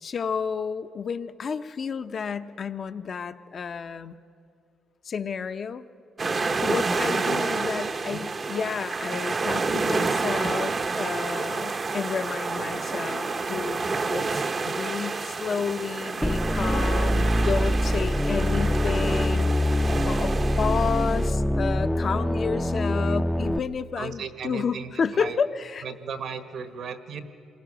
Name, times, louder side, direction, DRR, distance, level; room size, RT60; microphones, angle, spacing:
voice 1, 0.0-4.2 5.0-5.9 6.6-19.5 20.0-20.3 20.6-25.8, left 6 dB, 50° left, 10 dB, 0.8 m, -31 dB
sound 1, 6.2-21.3, right 4 dB, 35° right, 0.8 m, -29 dB
voice 2, 6.5-6.8 7.3-7.4 7.7-8.2 20.4-20.6 22.9-23.2 23.9-25.4 25.8-27.2, right 6 dB, 70° right, 9 dB, 1.4 m, -37 dB
sound 2, 16.2-23.6, left 1 dB, 5° left, 0.5 m, -24 dB
27.5 x 21.0 x 6.2 m, 2.5 s
cardioid pair, 90°, 0 cm